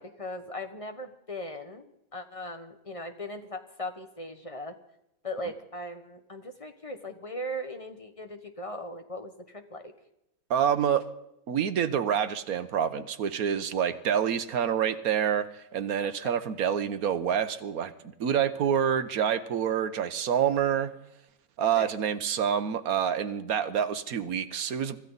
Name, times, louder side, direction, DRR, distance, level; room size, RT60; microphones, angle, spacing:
voice 1, 0.0-4.8 5.2-9.9 16.0-16.4 21.7-21.9, left 1 dB, 25° left, 7 dB, 1.3 m, -39 dB
voice 2, 10.5-11.1 11.5-17.9 18.2-20.9 21.6-25.1, right 8 dB, 80° right, 11 dB, 1.4 m, -27 dB
24.5 x 14.0 x 4.0 m, 0.83 s
omnidirectional pair, 1.5 m